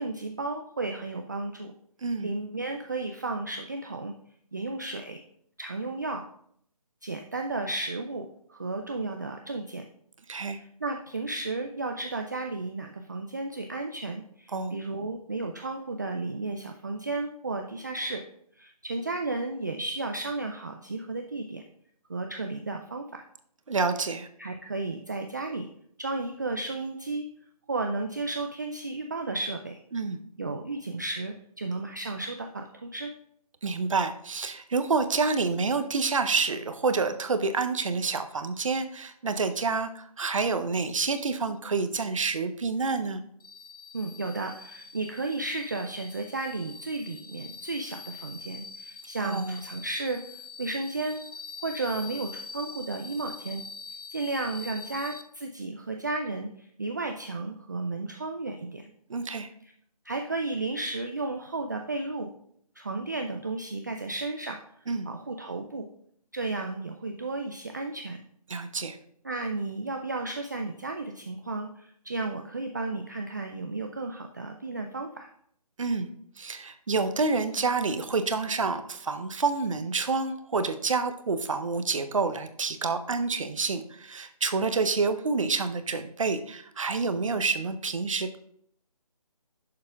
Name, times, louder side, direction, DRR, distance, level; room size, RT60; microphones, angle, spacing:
voice 1, 0.0-1.7 2.2-4.1 4.5-5.2 5.6-6.3 7.0-9.8 10.5-18.2 18.6-21.6 22.1-23.2 24.4-25.7 26.0-27.3 27.7-29.8 30.4-33.1 43.9-50.2 50.6-51.2 51.6-53.6 54.1-58.9 59.6-59.7 60.1-62.3 62.8-64.6 65.1-65.8 66.3-68.2 69.2-75.3, right 3 dB, 30° right, 4 dB, 0.3 m, -33 dB
voice 2, 23.7-24.3 29.9-30.2 33.6-43.2 49.2-49.6 59.1-59.5 64.9-65.1 68.5-69.0 75.8-76.1 76.4-88.4, right 4 dB, 55° right, 9 dB, 0.7 m, -28 dB
sound 1, 43.4-55.2, left 4 dB, 70° left, 0.8 m, -44 dB
9.3 x 6.6 x 2.3 m, 0.67 s
figure-of-eight pair, 160°, 20 cm